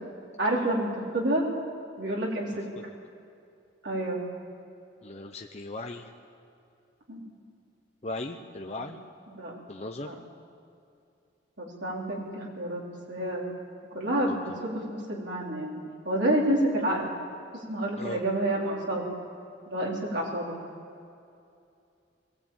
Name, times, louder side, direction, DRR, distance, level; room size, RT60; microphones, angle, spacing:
voice 1, 0.4-1.4 2.0-2.7 3.8-4.2 7.1-7.2 9.3-9.5 10.0-10.1 11.6-12.8 13.1-13.6 13.9-17.1 17.7-19.1 19.7-20.5, right 1 dB, 70° right, -3 dB, 4.0 m, -29 dB
voice 2, 5.0-6.1 8.0-9.0 9.7-10.1 14.3-14.4 18.0-18.2, left 2 dB, 35° left, 3 dB, 0.8 m, -37 dB
22.0 x 16.0 x 8.8 m, 2.5 s
head